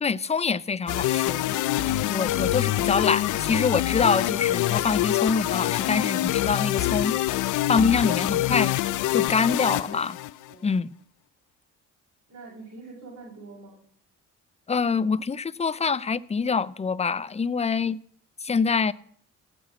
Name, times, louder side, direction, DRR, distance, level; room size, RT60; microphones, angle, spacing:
voice 1, 0.0-1.5 2.1-7.1 7.7-8.8 9.1-10.2 10.6-10.9 14.7-18.0 18.4-18.9, left 5 dB, 20° left, 0.5 m, -25 dB
sound 1, 0.9-10.5, left 15 dB, 85° left, 0.6 m, -25 dB
voice 2, 9.6-9.9 10.5-10.7 12.3-13.9, right 3 dB, 55° right, 5.5 m, -44 dB
17.0 x 6.2 x 8.7 m
cardioid pair, 90°, 30 cm